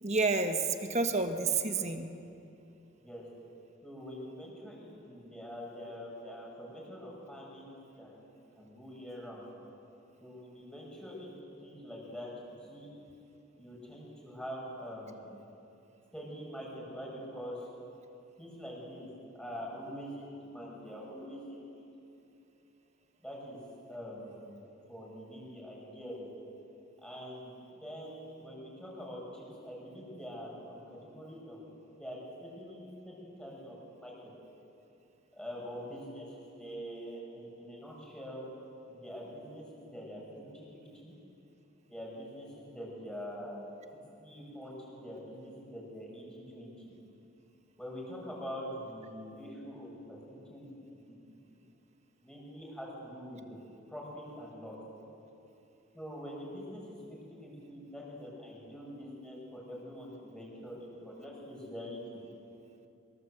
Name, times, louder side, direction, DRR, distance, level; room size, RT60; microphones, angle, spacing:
voice 1, 0.0-2.1, right 3 dB, 30° right, 6 dB, 1.5 m, -29 dB
voice 2, 3.8-8.1 8.6-9.5 10.2-11.3 11.6-12.3 12.6-12.9 13.6-15.3 16.1-17.7 18.4-20.1 20.4-21.9 23.2-23.6 23.9-24.5 24.9-26.3 27.0-31.6 32.0-34.3 35.3-36.3 36.6-38.5 38.9-40.6 40.9-41.1 41.9-43.7 44.2-46.9 47.8-50.7 51.1-51.2 52.2-53.6 53.9-54.8 55.9-62.0, equal, 5° left, -3 dB, 7.2 m, -44 dB
25.5 x 24.5 x 8.1 m, 2.8 s
head